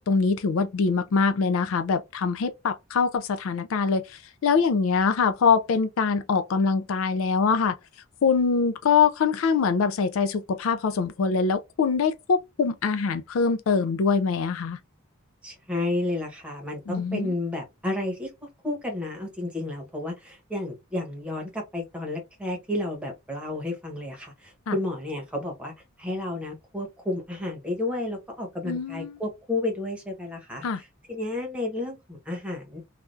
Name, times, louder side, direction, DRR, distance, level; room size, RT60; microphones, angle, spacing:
voice 1, 0.0-7.8 8.2-14.8 16.9-17.3 24.7-24.8 28.7-29.1 30.6-30.8, left 5 dB, 65° left, 0.4 m, -24 dB
voice 2, 15.4-25.7 26.0-32.8, left 2 dB, 5° right, 1.0 m, -31 dB
3.3 x 2.4 x 2.5 m
head